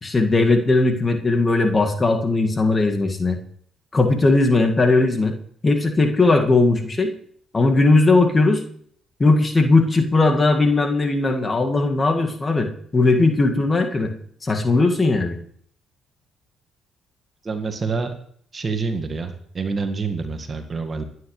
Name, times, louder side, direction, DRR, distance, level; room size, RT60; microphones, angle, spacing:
voice 1, 0.0-3.4 3.9-5.3 5.6-7.1 7.5-8.6 9.2-14.1 14.4-15.4, left 3 dB, 30° left, 4 dB, 2.0 m, -18 dB
voice 2, 17.4-18.1 18.5-21.0, right 4 dB, 40° right, 7 dB, 1.9 m, -27 dB
26.0 x 9.7 x 3.3 m, 0.62 s
hypercardioid pair, 50°, 0 cm